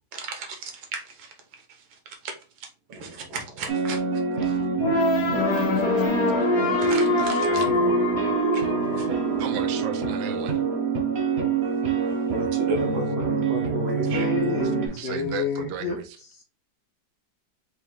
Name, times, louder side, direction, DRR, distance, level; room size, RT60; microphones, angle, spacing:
voice 1, 0.1-1.3 1.7-2.3 2.6-4.0 6.8-7.6 8.5-9.2 12.3-15.0, right 2 dB, 90° right, 1.8 m, -34 dB
sound 1, 3.7-14.9, right 5 dB, 50° right, 0.7 m, -26 dB
sound 2, 4.8-9.8, left 3 dB, 55° left, 1.3 m, -24 dB
voice 2, 7.4-8.1 9.4-10.6 14.6-16.2, right 8 dB, 70° right, 1.1 m, -36 dB
voice 3, 14.1-16.0, left 5 dB, 75° left, 0.6 m, -29 dB
4.6 x 2.6 x 3.7 m
omnidirectional pair, 2.1 m